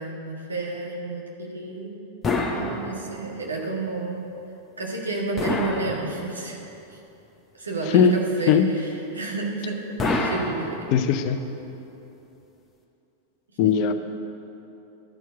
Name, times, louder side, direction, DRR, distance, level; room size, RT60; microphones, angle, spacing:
voice 1, 0.0-1.9 2.5-4.2 4.8-6.6 6.9-7.0 7.5-10.8 13.6-13.7, right 3 dB, 75° right, -1 dB, 1.5 m, -31 dB
sound 1, 2.2-3.4 5.4-6.6 10.0-11.3, left 2 dB, 20° left, 0.9 m, -28 dB
voice 2, 10.9-11.4 13.6-13.9, left 7 dB, 45° left, 8 dB, 0.6 m, -18 dB
11.5 x 4.5 x 8.1 m, 3.0 s
figure-of-eight pair, 90°, 0 cm